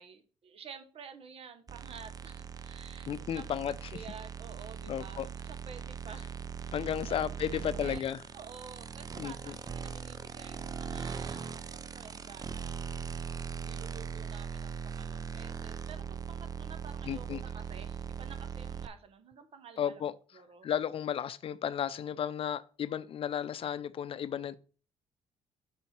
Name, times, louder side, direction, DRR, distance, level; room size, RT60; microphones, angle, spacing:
voice 1, 0.0-6.4 6.8-7.2 7.5-8.0 8.3-13.2 13.6-20.0 20.3-20.7, right 6 dB, 60° right, 1.2 m, -51 dB
sound 1, 1.7-18.9, right 6 dB, 35° right, 0.5 m, -40 dB
voice 2, 3.1-3.7 4.9-5.3 6.7-8.2 9.2-9.6 17.1-17.4 19.8-20.1 20.6-24.6, left 9 dB, 55° left, 0.5 m, -33 dB
5.5 x 4.1 x 5.9 m
supercardioid pair, 70°, 11 cm